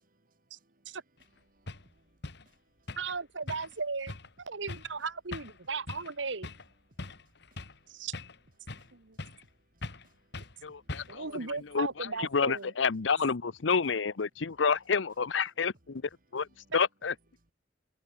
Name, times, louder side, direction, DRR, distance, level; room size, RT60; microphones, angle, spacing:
voice 1, 0.3-3.0 6.4-8.1 8.6-11.4 16.4-16.7, right 1 dB, 50° right, 3.1 m, -68 dB
sound 1, 1.2-1.3 1.7-1.9 2.2-2.5 2.9-3.2 3.5-3.8 4.1-4.3 4.7-4.9 5.3-5.6 5.9-6.1 6.4-6.7 7.0-7.8 8.1-8.9 9.2-9.5 9.8-10.1 10.3-10.6 10.9-11.3, left 2 dB, 65° left, 2.5 m, -41 dB
voice 2, 3.0-4.1 4.4-6.5 7.9-8.1 8.9-9.2 11.1-12.7, right 4 dB, 80° right, 1.5 m, -36 dB
voice 3, 10.6-16.0 16.3-16.5 16.7-17.1, left 5 dB, 80° left, 0.8 m, -29 dB
head